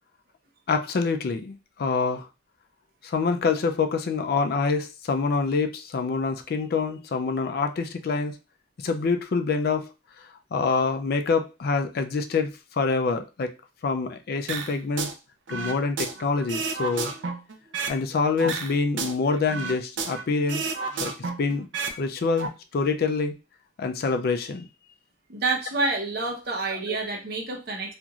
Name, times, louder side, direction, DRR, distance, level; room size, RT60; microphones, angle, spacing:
voice 1, 0.7-2.3 3.0-8.4 8.8-9.9 10.5-13.5 13.8-15.1 15.5-17.1 17.9-20.7 21.0-21.1 21.4-21.7 22.0-23.4 23.8-24.7 26.9-27.0, left 4 dB, 55° left, 6 dB, 0.4 m, -26 dB
sound 1, 14.5-15.1 15.5-18.0 18.4-20.2 20.5-22.0 22.2-22.5, right 4 dB, 80° right, 0.5 m, -31 dB
voice 2, 25.3-27.9, right 3 dB, 60° right, 1 dB, 0.8 m, -28 dB
3.0 x 2.5 x 2.3 m, 0.28 s
head